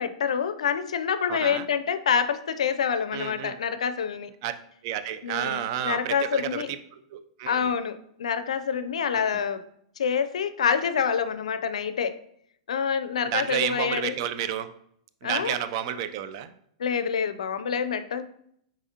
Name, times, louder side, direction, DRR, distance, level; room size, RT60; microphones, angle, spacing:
voice 1, 0.0-4.3 5.2-6.7 7.5-9.6 10.0-12.2 12.7-14.2 15.2-15.6 16.8-18.2, left 7 dB, 80° left, 12 dB, 0.4 m, -27 dB
voice 2, 1.3-1.7 3.1-3.6 4.4-4.5 4.8-7.7 9.2-9.4 13.2-14.7 15.2-16.5, right 10 dB, 50° right, 11 dB, 0.4 m, -31 dB
4.8 x 3.8 x 2.8 m, 0.70 s
hypercardioid pair, 125°, 3 cm